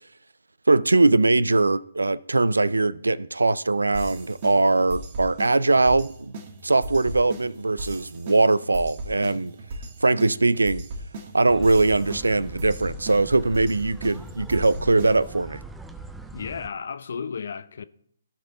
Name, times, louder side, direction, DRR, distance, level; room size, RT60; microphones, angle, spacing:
voice 1, 0.7-6.3 6.6-9.6 10.0-10.9 11.3-15.6, right 3 dB, 90° right, 0.4 m, -21 dB
sound 1, 3.9-15.5, right 1 dB, 40° right, 1.6 m, -38 dB
sound 2, 11.5-16.7, right 3 dB, 5° right, 0.5 m, -41 dB
voice 2, 16.3-17.8, left 6 dB, 65° left, 0.6 m, -33 dB
16.0 x 5.4 x 3.8 m
figure-of-eight pair, 140°, 0 cm